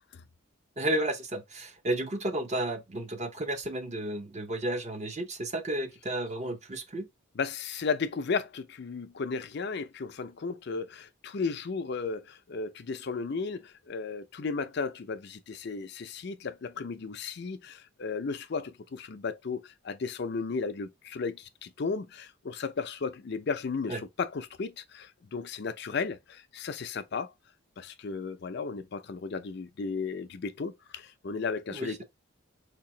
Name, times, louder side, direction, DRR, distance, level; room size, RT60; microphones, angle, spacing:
voice 1, 0.8-7.1 23.9-24.0 31.7-32.0, right 1 dB, 35° right, 0.7 m, -32 dB
voice 2, 7.4-27.3 27.8-32.0, left 4 dB, 55° left, 0.5 m, -34 dB
4.0 x 2.9 x 2.6 m
head